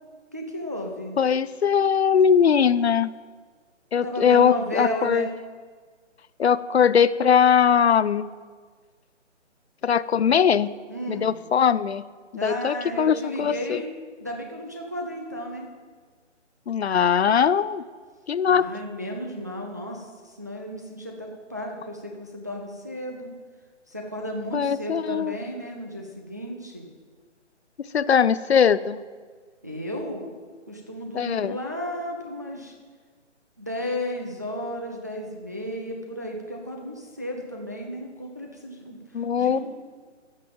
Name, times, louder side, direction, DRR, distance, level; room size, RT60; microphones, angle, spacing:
voice 1, 0.3-1.1 4.0-5.3 10.9-11.3 12.3-13.9 14.2-15.7 18.5-23.3 23.9-26.9 29.6-30.2 30.7-32.7 33.6-39.0 39.4-39.6, equal, 15° right, 0 dB, 0.5 m, -33 dB
voice 2, 1.2-3.1 3.9-5.3 6.4-8.3 9.8-10.7 11.1-12.1 12.4-13.8 16.7-17.8 18.3-18.7 24.5-25.3 27.8-29.0 31.1-31.6 39.1-39.6, left 7 dB, 60° left, 17 dB, 0.5 m, -20 dB
13.5 x 5.5 x 7.6 m, 1.5 s
figure-of-eight pair, 150°, 37 cm